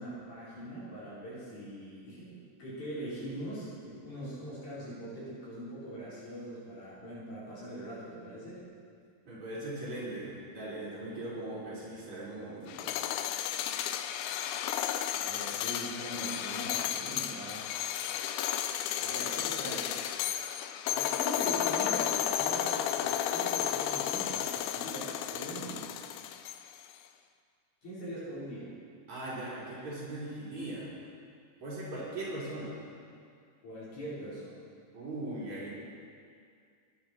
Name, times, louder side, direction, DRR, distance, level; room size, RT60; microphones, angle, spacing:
voice 1, 0.0-8.7 15.2-17.7 19.0-20.0 20.9-25.9 27.8-28.7 33.6-34.6, right 1 dB, 60° left, -9 dB, 5.6 m, -42 dB
voice 2, 9.3-12.9 29.1-30.9 31.6-32.8 34.9-35.7, right 1 dB, 55° right, -9 dB, 4.9 m, -39 dB
sound 1, 12.7-26.8, left 10 dB, 80° left, 1.9 m, -33 dB
17.5 x 10.5 x 4.4 m, 2.2 s
omnidirectional pair, 3.9 m